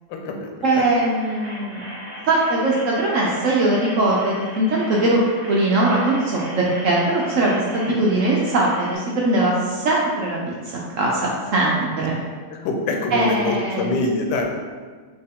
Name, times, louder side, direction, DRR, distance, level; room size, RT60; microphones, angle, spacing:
voice 1, 0.1-0.5 0.8-0.9 7.9-8.0 12.5-14.4, left 3 dB, 80° left, 2 dB, 1.2 m, -25 dB
voice 2, 0.6-1.8 2.3-5.2 5.5-10.5 11.0-12.2 13.1-14.0, right 2 dB, 65° right, -3 dB, 0.8 m, -20 dB
sound 1, 1.0-9.0, equal, 25° right, 0.8 m, -38 dB
4.3 x 3.0 x 3.5 m, 1.5 s
omnidirectional pair, 1.8 m